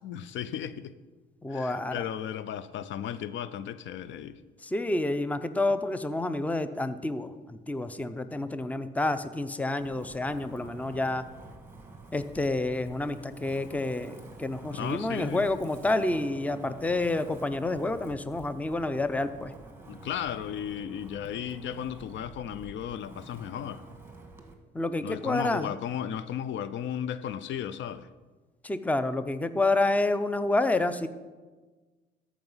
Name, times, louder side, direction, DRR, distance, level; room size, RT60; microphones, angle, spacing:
voice 1, 0.0-0.9 1.5-4.4 14.7-15.5 19.9-23.8 25.0-28.1, left 9 dB, 70° left, 0.5 m, -35 dB
voice 2, 1.4-2.0 4.6-11.3 12.1-19.5 24.7-25.7 28.6-31.1, left 2 dB, 5° left, 0.5 m, -29 dB
Wind, 9.8-24.5, right 3 dB, 10° right, 1.5 m, -49 dB
13.5 x 4.9 x 5.5 m
cardioid pair, 90°, 20 cm